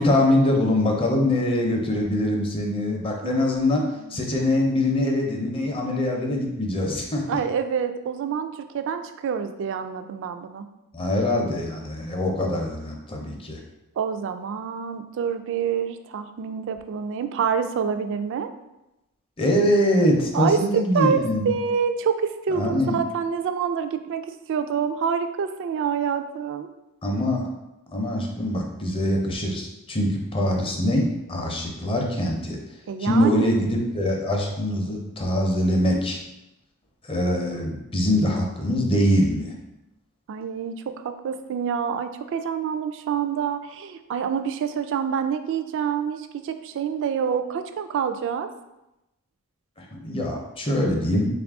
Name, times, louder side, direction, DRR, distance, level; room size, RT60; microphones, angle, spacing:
voice 1, 0.0-3.8 4.1-7.2 10.9-13.6 19.4-21.5 22.6-23.0 27.0-27.5 27.9-32.6 33.0-36.2 37.0-39.5 49.8-51.3, left 1 dB, 25° left, 0 dB, 0.6 m, -23 dB
voice 2, 3.9-4.2 7.3-10.7 14.0-18.5 20.3-20.6 20.9-26.7 32.9-33.6 40.3-48.5, right 7 dB, 60° right, 9 dB, 0.3 m, -27 dB
3.8 x 2.4 x 3.5 m, 0.93 s
head